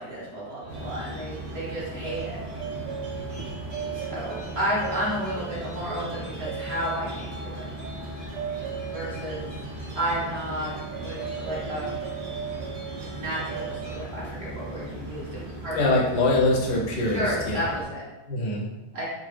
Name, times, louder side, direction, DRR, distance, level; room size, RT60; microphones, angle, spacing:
voice 1, 0.0-2.4 3.9-7.7 8.9-9.5 9.9-10.7 11.0-12.0 13.1-15.8 17.1-18.0 18.9-19.0, equal, 40° right, -8 dB, 1.4 m, -32 dB
sound 1, 0.6-14.0, right 6 dB, 75° right, 1.6 m, -38 dB
sound 2, 0.7-17.8, right 1 dB, 50° left, 0.7 m, -38 dB
voice 2, 15.7-17.6 18.3-18.7, left 2 dB, 75° left, -2 dB, 1.3 m, -23 dB
3.9 x 2.2 x 3.2 m, 1.1 s
omnidirectional pair, 1.9 m